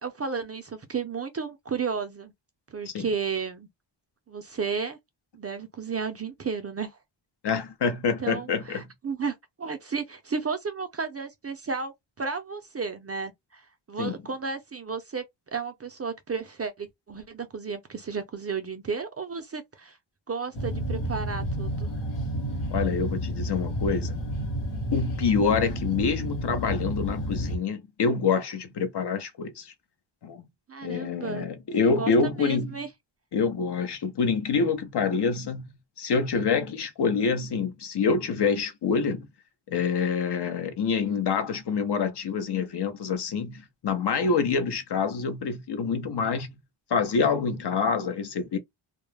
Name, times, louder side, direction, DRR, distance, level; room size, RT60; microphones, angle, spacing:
voice 1, 0.0-2.3 2.7-3.7 4.3-5.0 5.3-7.0 8.2-20.0 20.3-21.9 30.7-31.5 31.8-32.1 32.4-32.9, right 5 dB, 35° right, 0.4 m, -33 dB
voice 2, 7.4-8.8 14.0-14.2 22.7-24.2 24.9-29.7 30.2-30.4 30.8-32.8 33.3-35.7 36.0-39.3 39.7-46.5 46.9-48.6, left 5 dB, 55° left, 0.6 m, -26 dB
sound 1, 20.5-27.6, equal, 80° left, 1.0 m, -30 dB
2.2 x 2.0 x 3.2 m
wide cardioid pair, 105°, 48 cm